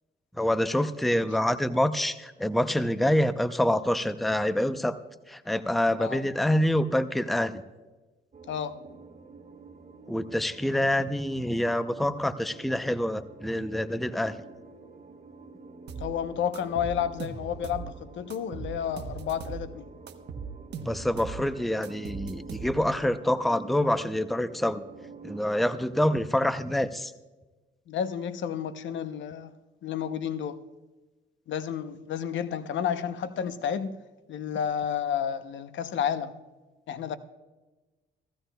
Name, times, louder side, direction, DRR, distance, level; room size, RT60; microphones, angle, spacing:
voice 1, 0.4-5.0 5.3-7.5 10.1-14.3 20.9-24.8 25.2-27.1, left 1 dB, ahead, 0.6 m, -26 dB
sound 1, 8.3-25.8, right 3 dB, 35° right, 2.3 m, -49 dB
voice 2, 8.5-8.8 16.0-19.9 27.9-29.5 29.8-30.6 31.5-33.9 34.3-36.3 36.9-37.2, left 8 dB, 70° left, 0.8 m, -31 dB
sound 2, 15.9-16.1 16.5-17.9 18.3-19.7 20.1-21.4 21.8-23.0, right 6 dB, 60° right, 1.1 m, -39 dB
16.0 x 15.5 x 2.3 m
cardioid pair, 90°, 20 cm